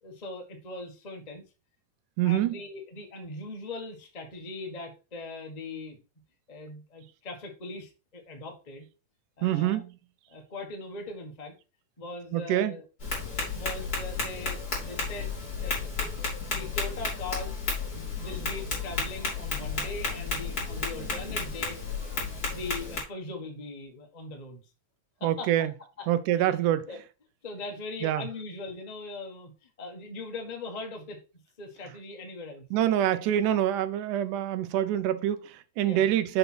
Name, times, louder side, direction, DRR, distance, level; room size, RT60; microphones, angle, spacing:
voice 1, 0.0-1.4 2.2-6.0 6.5-8.8 9.4-9.8 10.3-11.5 12.0-12.8 13.5-15.8 16.5-17.7 18.2-21.8 22.5-24.6 25.2-25.7 26.0-26.1 26.4-26.6 26.9-27.0 27.4-31.2 31.6-32.6 35.8-36.1, left 2 dB, 75° left, 0.3 m, -40 dB
voice 2, 2.2-2.6 9.4-9.9 12.3-12.8 25.2-25.7 26.1-26.9 28.0-28.2 32.7-36.4, right 11 dB, 80° right, 2.1 m, -26 dB
Tap, 13.0-23.0, left 4 dB, 30° left, 3.5 m, -32 dB
6.6 x 4.0 x 6.0 m
omnidirectional pair, 3.7 m